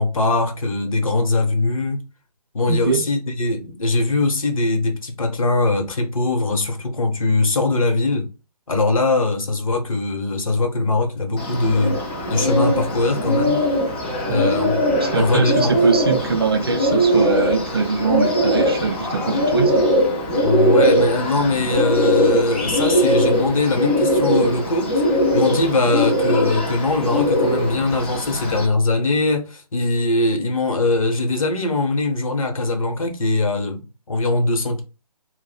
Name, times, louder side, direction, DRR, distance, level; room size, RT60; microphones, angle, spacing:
voice 1, 0.0-2.0 2.5-8.3 8.7-11.9 12.3-13.6 14.3-14.7 15.2-15.7 20.4-24.9 25.3-34.8, left 2 dB, 55° left, 0.9 m, -21 dB
voice 2, 2.7-3.0 14.3-14.6 15.0-19.8, right 4 dB, 40° right, 0.4 m, -22 dB
Bird, 11.4-28.7, equal, 15° left, 0.5 m, -20 dB
2.6 x 2.0 x 4.0 m
figure-of-eight pair, 150°, 20 cm